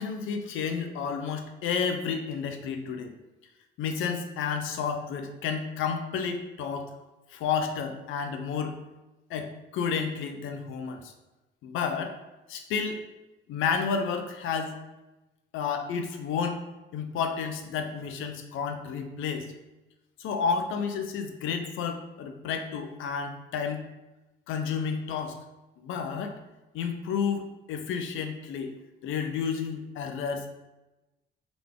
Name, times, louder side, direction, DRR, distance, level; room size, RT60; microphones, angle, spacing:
voice 1, 0.0-3.1 3.8-6.9 7.3-8.8 9.3-11.1 11.6-12.2 12.5-13.0 13.5-14.8 15.5-16.6 16.9-19.5 20.2-23.8 24.5-25.4 25.8-26.4 26.7-28.7 29.0-30.5, left 6 dB, 90° left, 6 dB, 0.6 m, -31 dB
3.9 x 3.4 x 3.6 m, 1.0 s
cardioid pair, 90°, 20 cm